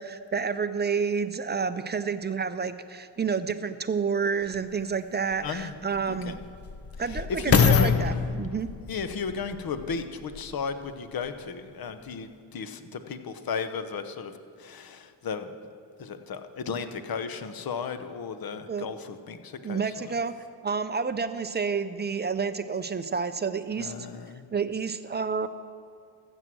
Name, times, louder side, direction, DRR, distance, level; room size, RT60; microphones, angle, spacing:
voice 1, 0.0-6.3 7.0-8.7 18.7-18.9 19.6-20.3 20.6-23.9 24.5-25.5, right 5 dB, 20° right, 11 dB, 0.5 m, -29 dB
sound 1, 4.5-4.6 5.3-10.6 11.3-11.4, left 6 dB, 30° left, 0.6 m, -26 dB
voice 2, 5.4-5.7 6.1-6.4 7.1-8.1 8.9-15.5 16.0-20.1 23.8-24.5, left 5 dB, 45° left, 10 dB, 0.9 m, -35 dB
14.0 x 7.8 x 6.2 m, 2.3 s
cardioid pair, 90°, 49 cm